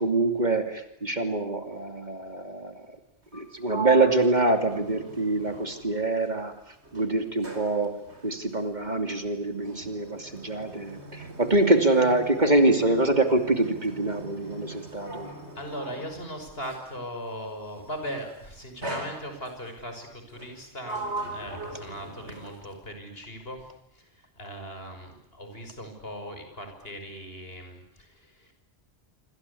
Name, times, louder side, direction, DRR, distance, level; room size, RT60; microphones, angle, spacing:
voice 1, 0.0-2.8 3.3-8.0 8.2-15.3, right 2 dB, 40° right, 7 dB, 2.9 m, -25 dB
Sliding door, 3.2-6.5 6.8-17.0 17.9-18.2 18.8-19.7 20.3-22.9, right 3 dB, 75° right, 5.0 m, -39 dB
voice 2, 15.5-28.5, equal, 60° left, 6 dB, 6.3 m, -39 dB
27.0 x 26.0 x 8.5 m, 0.74 s
omnidirectional pair, 1.1 m